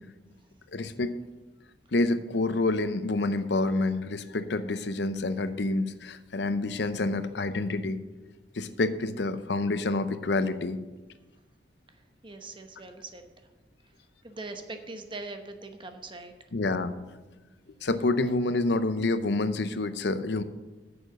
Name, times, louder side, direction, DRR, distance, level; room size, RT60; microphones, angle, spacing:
voice 1, 0.7-1.1 1.9-8.0 8.6-10.8 16.5-16.9 17.8-20.4, left 2 dB, 70° left, 11 dB, 0.7 m, -28 dB
voice 2, 12.2-13.3 14.2-16.3 17.5-17.9, right 3 dB, 30° right, 6 dB, 0.9 m, -42 dB
9.0 x 7.0 x 6.5 m, 1.2 s
head